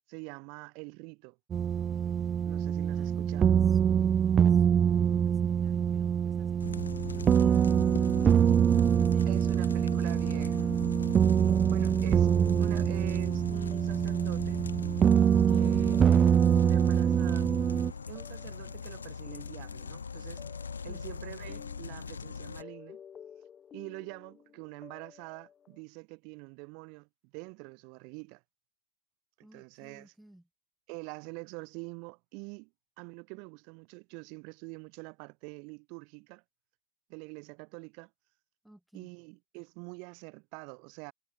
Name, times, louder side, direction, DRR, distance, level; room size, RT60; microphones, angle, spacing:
voice 1, 0.1-1.4 2.5-3.6 9.3-10.7 11.7-12.3 12.6-14.6 15.5-16.1 16.5-17.5 18.1-20.4 20.8-23.0 23.7-28.4 29.4-30.1 30.9-32.7 33.0-36.4 37.1-38.1 38.9-41.1, right 35 dB, 45° right, 7.3 m, -45 dB
sound 1, 1.5-17.9, right 8 dB, 25° right, 0.3 m, -25 dB
voice 2, 2.9-8.7 9.0-10.7 20.9-21.1 29.4-30.5 38.6-39.1, right 1 dB, 5° right, 4.9 m, -54 dB
sound 2, 6.6-22.6, left 5 dB, 75° left, 2.1 m, -41 dB
sound 3, 7.3-25.8, left 8 dB, 25° left, 4.3 m, -54 dB
figure-of-eight pair, 90°, 0 cm